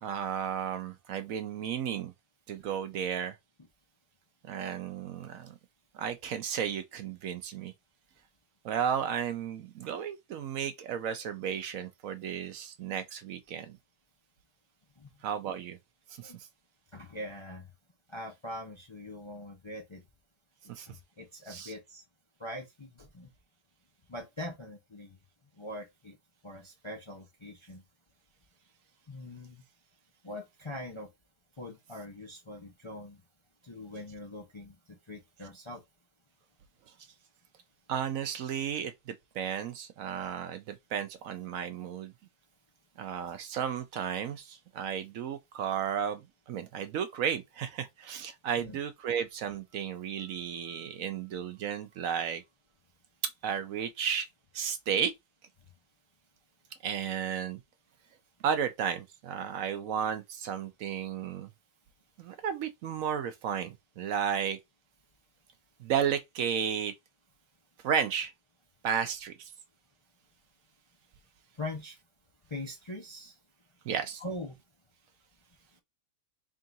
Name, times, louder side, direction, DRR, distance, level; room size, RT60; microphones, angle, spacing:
voice 1, 0.0-2.1 2.5-3.4 4.4-5.6 5.9-7.7 8.6-13.8 15.2-15.8 16.2-16.3 20.7-20.9 21.5-21.7 37.9-42.1 43.0-52.4 53.4-54.3 54.5-55.1 56.8-57.6 58.4-61.5 62.2-64.6 65.8-66.9 67.8-68.3 68.8-69.5 73.8-74.2, right 8 dB, 70° right, 0.9 m, -33 dB
voice 2, 16.9-17.7 18.1-20.0 20.9-22.0 22.4-23.3 24.1-25.2 25.6-26.2 26.4-27.8 29.1-29.6 30.2-31.1 31.6-33.2 33.6-35.8 48.6-48.8 71.6-72.0 72.5-73.3 74.2-74.6, left 1 dB, 35° left, 0.4 m, -42 dB
3.7 x 2.4 x 4.0 m
omnidirectional pair, 1.6 m